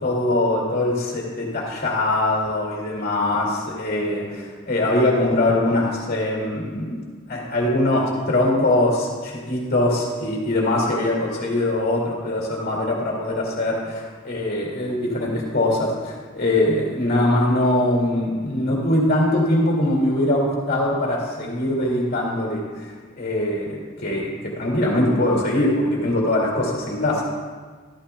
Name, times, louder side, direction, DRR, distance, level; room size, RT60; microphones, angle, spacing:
voice 1, 0.0-7.0 7.3-22.9 23.2-27.2, left 1 dB, 45° left, -2 dB, 2.3 m, -22 dB
13.0 x 13.0 x 2.3 m, 1.5 s
head